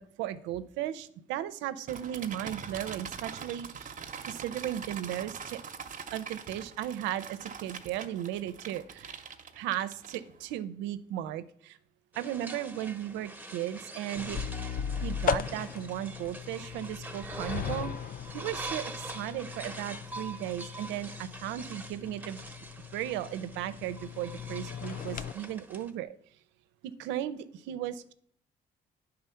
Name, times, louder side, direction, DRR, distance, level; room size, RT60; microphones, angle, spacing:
voice 1, 0.0-4.0 4.3-5.6 6.1-9.2 9.5-11.8 12.2-14.4 15.0-17.9 18.3-22.4 22.9-26.2 26.8-28.1, right 12 dB, 90° right, 14 dB, 0.5 m, -36 dB
sound 1, 1.9-10.6, right 6 dB, 45° right, 0.8 m, -43 dB
sound 2, 12.1-25.9, right 2 dB, 10° right, 0.9 m, -44 dB
sound 3, 14.2-25.3, left 7 dB, 50° left, 0.5 m, -38 dB
9.6 x 3.8 x 5.6 m, 0.63 s
supercardioid pair, 60°, 18 cm